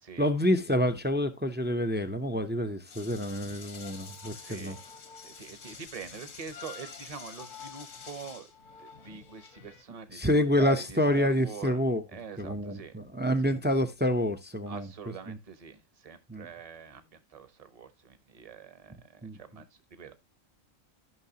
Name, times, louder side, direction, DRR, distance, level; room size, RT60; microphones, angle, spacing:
voice 1, 0.2-4.8 10.1-12.0 12.4-15.4 16.3-16.5 19.2-19.4, equal, 15° right, 0.4 m, -28 dB
sound 1, 2.9-9.8, left 6 dB, 75° left, 1.6 m, -47 dB
voice 2, 4.3-4.8 5.2-8.5 8.8-11.8 12.1-13.0 13.4-13.5 14.7-20.2, right 6 dB, 30° right, 0.9 m, -44 dB
14.0 x 5.8 x 2.8 m
omnidirectional pair, 1.4 m